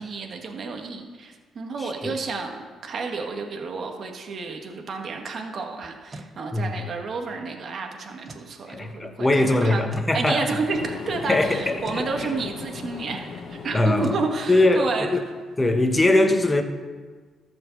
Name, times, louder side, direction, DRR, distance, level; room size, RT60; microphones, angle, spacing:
voice 1, 0.0-15.1, right 4 dB, 50° right, 3 dB, 1.5 m, -31 dB
voice 2, 1.8-2.2 6.5-6.7 8.7-10.5 11.3-12.3 13.7-14.2 14.5-15.2 15.6-16.6, left 2 dB, 20° left, 6 dB, 1.2 m, -21 dB
sound 1, 5.8-6.4 8.2-8.5 9.9-10.2 11.8-12.1 14.0-14.3, right 1 dB, 25° right, 1.0 m, -41 dB
sound 2, 10.7-15.6, left 5 dB, 60° left, 1.1 m, -38 dB
13.5 x 5.2 x 7.1 m, 1.5 s
cardioid pair, 90°, 0 cm